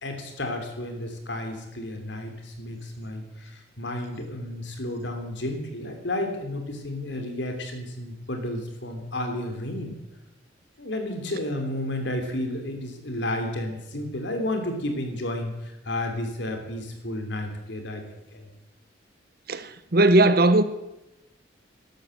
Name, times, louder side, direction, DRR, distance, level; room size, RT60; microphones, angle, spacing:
voice 1, 0.0-9.9 10.8-18.5, left 1 dB, 70° left, 3.1 m, -32 dB
voice 2, 19.5-20.6, right 2 dB, 50° right, 1.0 m, -18 dB
12.5 x 11.5 x 7.7 m
head